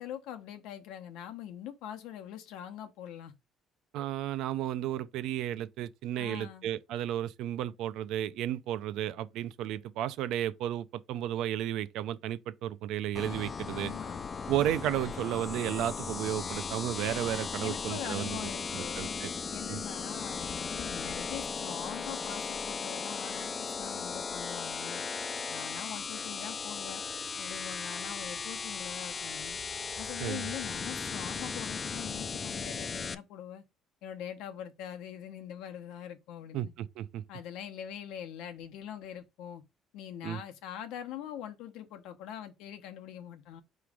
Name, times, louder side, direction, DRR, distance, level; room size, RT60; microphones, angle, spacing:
voice 1, 0.0-3.3 6.2-6.7 13.7-14.3 17.6-19.2 19.5-25.0 25.5-27.0 27.4-29.6 30.0-33.6 34.0-36.7 37.3-39.6 39.9-43.6, left 10 dB, 85° left, 0.9 m, -43 dB
voice 2, 3.9-13.9 14.5-19.3 19.7-19.8 30.2-30.5 36.5-37.2 40.2-40.4, right 12 dB, 70° right, 0.4 m, -33 dB
sound 1, 13.2-33.2, left 5 dB, 25° left, 0.3 m, -37 dB
4.9 x 3.1 x 3.5 m
cardioid pair, 170°, 0 cm